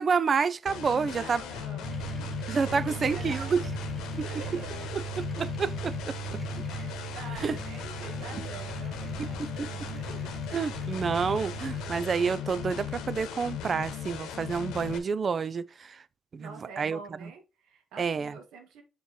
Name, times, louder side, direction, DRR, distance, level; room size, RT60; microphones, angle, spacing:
voice 1, 0.0-1.4 2.5-3.6 4.2-4.3 4.9-6.1 7.4-7.6 9.2-9.7 10.5-16.0 16.3-17.3 18.0-18.4, right 5 dB, 45° right, 0.5 m, -29 dB
sound 1, 0.7-15.0, left 9 dB, 90° left, 1.0 m, -37 dB
voice 2, 1.1-3.8 4.1-5.1 6.6-10.3 16.4-18.8, right 5 dB, 85° right, 1.7 m, -46 dB
sound 2, 1.8-12.3, right 9 dB, 10° right, 2.5 m, -39 dB
6.4 x 5.3 x 3.0 m
cardioid pair, 90°, 0 cm